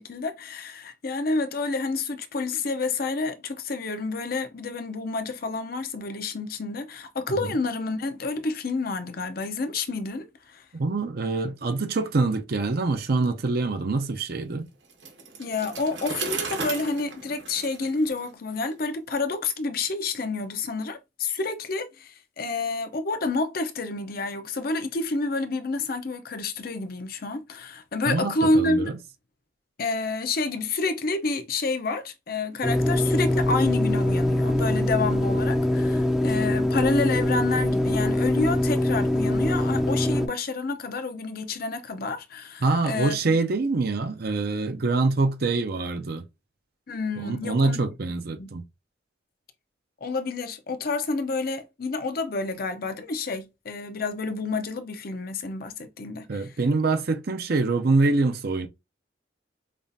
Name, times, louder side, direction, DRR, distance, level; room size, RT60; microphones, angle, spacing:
voice 1, 0.0-10.6 15.4-28.9 29.8-43.4 46.9-47.8 48.4-48.5 50.0-56.6, left 3 dB, 50° left, 0.6 m, -29 dB
voice 2, 10.8-14.7 28.1-28.9 42.6-46.2 47.2-48.6 56.3-58.7, right 3 dB, 55° right, 0.6 m, -25 dB
Bicycle, 14.9-18.7, right 4 dB, 70° right, 1.3 m, -35 dB
sound 1, 32.6-40.3, left 1 dB, 5° right, 0.5 m, -23 dB
5.3 x 2.4 x 2.6 m
head